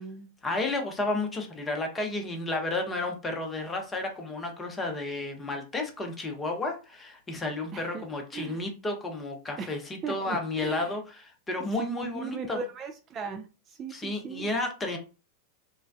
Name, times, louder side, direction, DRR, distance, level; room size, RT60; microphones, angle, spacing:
voice 1, 0.4-12.6 13.9-15.0, left 2 dB, 15° left, 3 dB, 0.7 m, -32 dB
voice 2, 7.7-8.0 8.3-8.6 9.6-10.9 11.8-14.5, right 5 dB, 30° right, 5 dB, 0.3 m, -38 dB
3.1 x 2.1 x 2.4 m, 0.32 s
figure-of-eight pair, 90°, 0 cm